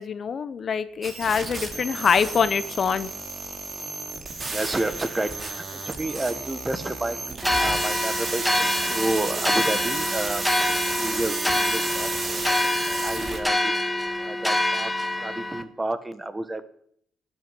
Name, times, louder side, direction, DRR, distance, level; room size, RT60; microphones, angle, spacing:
voice 1, 0.0-3.1, left 6 dB, 50° left, 14 dB, 0.9 m, -24 dB
sound 1, 1.0-13.4, right 3 dB, 35° right, 3.1 m, -32 dB
voice 2, 4.5-12.4 12.9-13.7 14.2-16.6, right 2 dB, 20° right, 12 dB, 1.3 m, -31 dB
sound 2, 7.4-15.6, left 1 dB, 5° left, 1.5 m, -26 dB
12.0 x 8.0 x 10.0 m, 0.65 s
cardioid pair, 90°, 0 cm